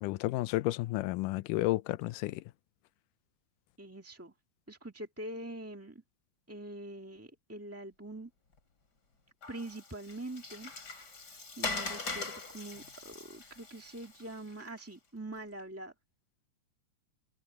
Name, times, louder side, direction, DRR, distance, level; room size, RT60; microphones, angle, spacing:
voice 1, 0.0-2.4, left 18 dB, 80° left, 2.1 m, -32 dB
voice 2, 3.8-4.3 4.7-6.0 6.5-8.3 9.5-10.7 11.0-15.9, right 1 dB, 10° right, 0.7 m, -44 dB
Water, 9.4-14.8, left 4 dB, 30° left, 3.5 m, -41 dB
omnidirectional pair, 3.8 m